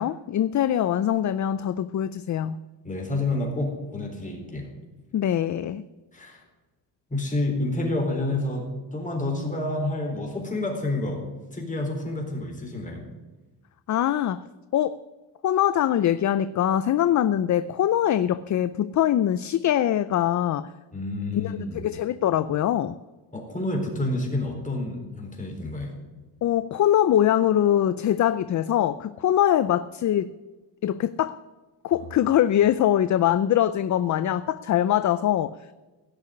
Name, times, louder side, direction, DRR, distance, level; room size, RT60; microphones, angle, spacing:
voice 1, 0.0-2.6 5.1-5.8 13.9-14.4 14.7-15.0 15.4-20.7 21.3-23.0 26.4-30.3 30.8-31.4 31.8-35.5, left 11 dB, 40° left, 15 dB, 0.4 m, -23 dB
voice 2, 2.8-4.7 6.1-6.4 7.1-11.2 11.5-13.0 20.9-21.8 23.3-26.0, left 2 dB, 15° left, 1 dB, 3.9 m, -29 dB
16.5 x 6.6 x 9.8 m, 1.2 s
cardioid pair, 135°, 44 cm